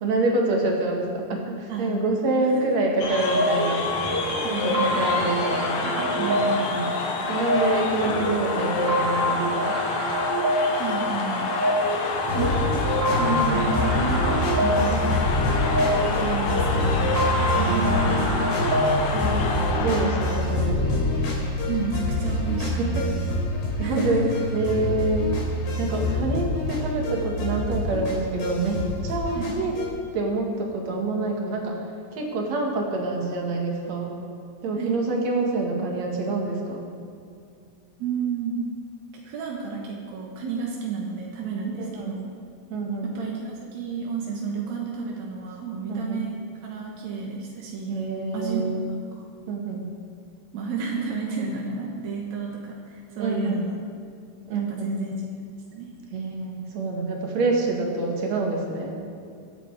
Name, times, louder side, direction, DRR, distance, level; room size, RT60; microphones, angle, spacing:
voice 1, 0.0-3.8 4.6-5.9 6.2-6.9 7.3-9.8 13.3-13.6 13.9-15.2 17.6-18.4 19.1-20.9 22.8-22.9 23.8-24.2 24.5-25.3 25.8-29.7 30.1-31.7 32.1-34.1 34.6-36.8 41.8-42.2 42.7-43.1 45.9-46.2 47.9-48.8 49.5-49.8 53.2-53.6 54.5-54.9 56.1-59.0, right 2 dB, 50° right, 0 dB, 2.5 m, -27 dB
voice 2, 1.7-2.3 2.5-2.8 4.4-5.6 5.9-6.3 10.7-11.6 12.3-12.6 13.1-14.1 14.6-15.4 16.1-18.3 21.7-23.2 23.8-24.4 29.3-29.6 34.8-35.0 38.0-38.6 39.2-42.3 43.0-48.0 48.3-49.3 50.5-53.8 54.5-55.3 55.7-55.9, right 4 dB, 70° right, -1 dB, 1.8 m, -32 dB
sound 1, 3.0-20.6, left 4 dB, 85° left, 3.9 m, -29 dB
sound 2, 3.2-19.7, equal, 20° right, 2.6 m, -27 dB
sound 3, 12.3-29.9, left 1 dB, 65° left, 5.0 m, -26 dB
24.5 x 9.1 x 4.9 m, 2.4 s
omnidirectional pair, 5.2 m